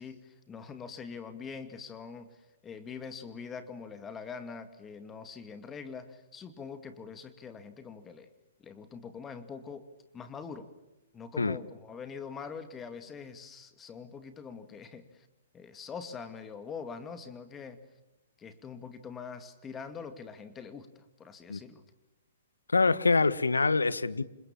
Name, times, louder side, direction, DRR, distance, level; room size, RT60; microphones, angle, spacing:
voice 1, 0.0-8.3 8.6-9.9 10.1-10.7 11.1-15.3 15.5-17.8 18.4-21.8, left 5 dB, 20° left, 9 dB, 2.4 m, -44 dB
voice 2, 22.7-24.2, left 3 dB, 90° left, 17 dB, 1.5 m, -25 dB
29.0 x 27.0 x 7.4 m, 0.97 s
hypercardioid pair, 120°, 0 cm